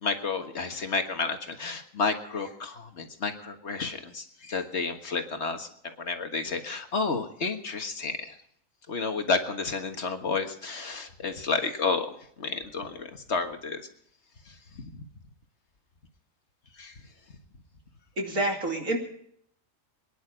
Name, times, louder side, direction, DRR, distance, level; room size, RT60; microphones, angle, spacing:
voice 1, 0.0-8.4 8.9-12.1 12.4-13.8 14.5-15.1 16.8-16.9, left 4 dB, 60° left, 6 dB, 1.8 m, -31 dB
voice 2, 18.2-19.0, right 2 dB, 90° right, 1 dB, 3.2 m, -27 dB
24.5 x 10.5 x 5.1 m, 0.67 s
omnidirectional pair, 1.3 m